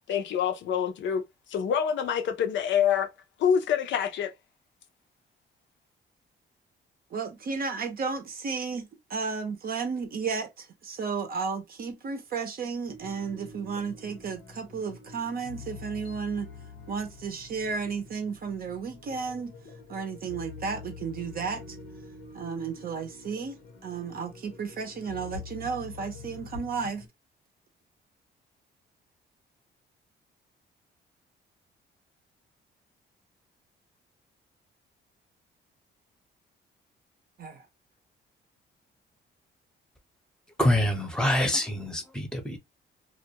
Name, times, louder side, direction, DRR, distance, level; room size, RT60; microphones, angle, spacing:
voice 1, 0.1-1.2 1.5-3.1 3.4-4.3, left 8 dB, 70° left, 0.6 m, -26 dB
voice 2, 7.1-16.5 16.9-19.5 19.9-21.8 22.3-27.0 37.4-37.7, right 5 dB, 50° right, 0.6 m, -33 dB
sound 1, 12.9-27.1, left 4 dB, 90° left, 0.9 m, -46 dB
voice 3, 40.6-42.6, left 1 dB, 5° left, 0.7 m, -25 dB
2.4 x 2.1 x 2.7 m
cardioid pair, 90°, 20 cm